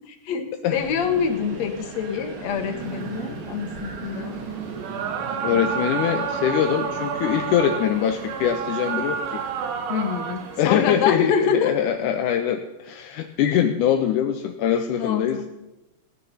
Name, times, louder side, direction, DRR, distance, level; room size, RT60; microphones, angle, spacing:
voice 1, 0.1-4.4 9.9-11.7 14.9-15.5, left 7 dB, 55° left, 5 dB, 2.2 m, -26 dB
sound 1, 0.7-12.2, right 4 dB, 45° right, 2.5 m, -38 dB
sound 2, 2.8-10.7, right 7 dB, 70° right, 2.3 m, -30 dB
voice 2, 5.4-9.4 10.6-15.4, left 9 dB, 75° left, 5 dB, 1.9 m, -23 dB
17.5 x 9.7 x 5.6 m, 0.99 s
omnidirectional pair, 4.3 m